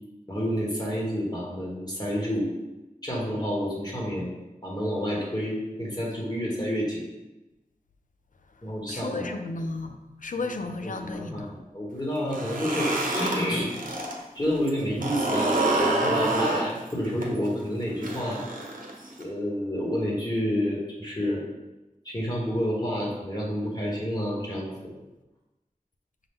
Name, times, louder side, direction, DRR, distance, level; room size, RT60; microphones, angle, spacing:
voice 1, 0.3-2.5 3.0-4.3 4.6-7.0 8.6-9.3 10.8-13.7 14.3-18.4 19.2-21.4 22.0-24.9, equal, 30° left, -5 dB, 1.2 m, -29 dB
voice 2, 8.9-11.5, left 3 dB, 60° left, 6 dB, 0.4 m, -34 dB
sound 1, 12.2-14.2 14.5-19.2, right 2 dB, 65° right, 0.8 m, -27 dB
5.5 x 2.3 x 3.5 m, 1.0 s
wide cardioid pair, 60°, 15 cm